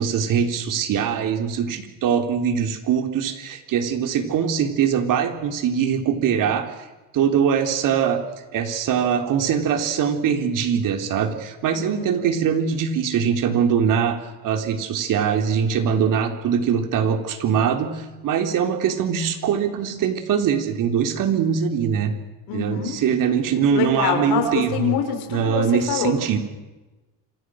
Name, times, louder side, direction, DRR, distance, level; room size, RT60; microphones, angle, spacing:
voice 1, 0.0-6.7 7.1-8.2 8.5-22.1 22.5-24.9 25.3-26.4, right 7 dB, 60° right, 5 dB, 3.9 m, -22 dB
voice 2, 11.8-12.3 22.5-23.0 23.7-26.1, left 8 dB, 85° left, 5 dB, 5.9 m, -25 dB
28.5 x 26.5 x 6.5 m, 1.1 s
cardioid pair, 140°, 36 cm